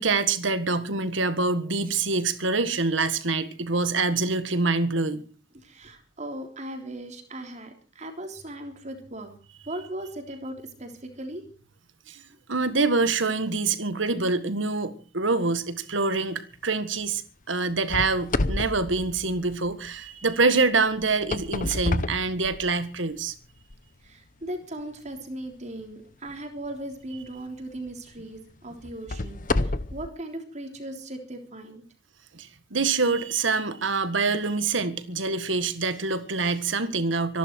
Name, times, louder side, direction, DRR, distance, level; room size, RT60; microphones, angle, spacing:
voice 1, 0.0-5.2 12.1-12.2 12.5-17.2 17.5-23.3 32.3-37.4, right 3 dB, 80° right, 12 dB, 1.8 m, -25 dB
voice 2, 5.6-9.3 9.6-11.4 24.0-31.8, right 1 dB, 35° right, 5 dB, 3.4 m, -38 dB
sound 1, 17.9-19.9 21.0-23.0 23.6-23.7 24.4-24.5 27.1-27.3 27.9-28.0 28.8-30.1, left 2 dB, 45° left, 0.9 m, -29 dB
25.0 x 11.5 x 4.7 m, 0.38 s
head